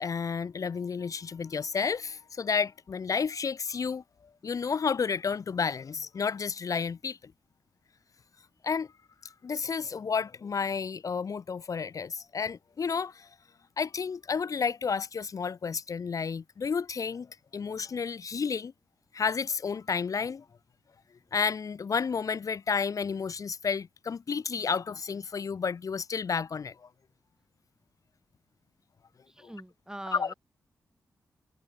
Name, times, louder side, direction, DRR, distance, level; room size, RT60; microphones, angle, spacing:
voice 1, 0.0-4.0 4.4-7.3 8.6-8.9 9.2-13.3 13.8-18.7 19.1-20.4 21.3-26.9 29.4-29.5 30.1-30.3, left 5 dB, 55° left, 1.0 m, -31 dB
voice 2, 29.3-30.3, right 1 dB, 10° right, 2.5 m, -42 dB
supercardioid pair, 40°, 7 cm